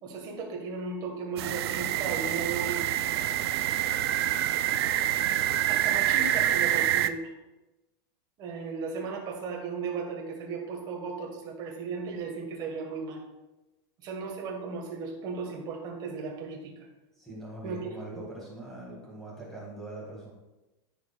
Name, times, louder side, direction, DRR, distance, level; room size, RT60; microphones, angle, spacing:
voice 1, 0.0-2.8 5.2-7.3 8.4-13.2 14.0-16.9 17.6-18.3, right 4 dB, 30° right, 0 dB, 1.6 m, -36 dB
sound 1, 1.4-7.1, right 12 dB, 70° right, 0.5 m, -26 dB
voice 2, 17.2-20.3, right 2 dB, 5° left, -6 dB, 2.1 m, -42 dB
13.5 x 4.9 x 2.4 m, 1.0 s
supercardioid pair, 175°, 14 cm